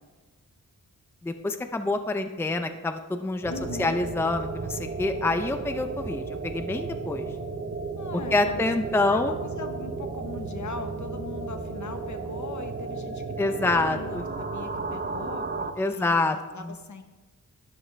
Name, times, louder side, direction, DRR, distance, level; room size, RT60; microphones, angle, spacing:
voice 1, 1.2-3.5 3.8-7.3 8.3-9.3 13.4-14.2 15.8-16.4 16.6-16.7, left 2 dB, 5° left, 7 dB, 0.5 m, -26 dB
sound 1, 3.4-15.7, right 4 dB, 30° right, 0.7 m, -34 dB
voice 2, 3.5-4.0 8.0-8.6 9.1-16.2 16.5-17.0, left 4 dB, 60° left, 7 dB, 1.1 m, -40 dB
12.5 x 9.6 x 3.3 m, 1.2 s
wide cardioid pair, 120°, 33 cm